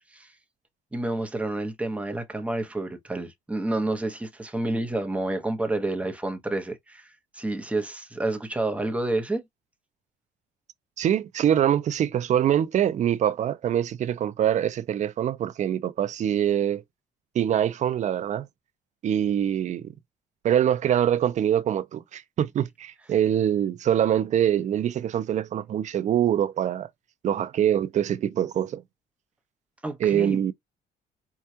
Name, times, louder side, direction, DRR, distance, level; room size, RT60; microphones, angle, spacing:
voice 1, 0.9-9.4 29.8-30.4, right 2 dB, 5° right, 0.9 m, -29 dB
voice 2, 11.0-16.8 17.3-18.5 19.0-19.9 20.4-26.9 27.2-28.8 30.0-30.5, right 10 dB, 45° right, 0.5 m, -24 dB
4.5 x 2.3 x 2.7 m
cardioid pair, 110°, 17 cm